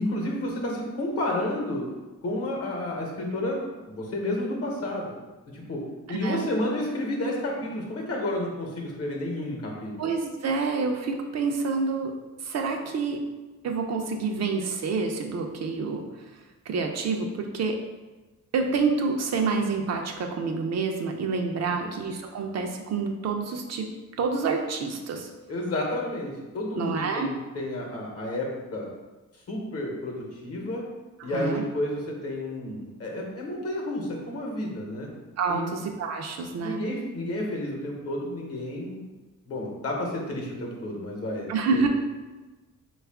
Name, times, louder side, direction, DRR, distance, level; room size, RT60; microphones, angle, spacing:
voice 1, 0.0-1.8 2.2-3.6 3.8-5.1 5.5-10.1 21.6-21.9 25.5-28.9 29.5-30.8 31.2-35.1 35.5-35.7 36.6-39.0 39.5-41.9, left 1 dB, 50° left, 0 dB, 0.9 m, -31 dB
voice 2, 6.1-6.5 10.0-13.2 13.6-16.1 16.3-16.4 16.7-17.8 18.5-23.9 24.2-25.3 26.8-27.3 31.2-31.6 35.4-36.8 41.5-41.9, right 4 dB, 55° right, 3 dB, 0.5 m, -28 dB
3.5 x 2.3 x 3.4 m, 1.2 s
cardioid pair, 120°, 32 cm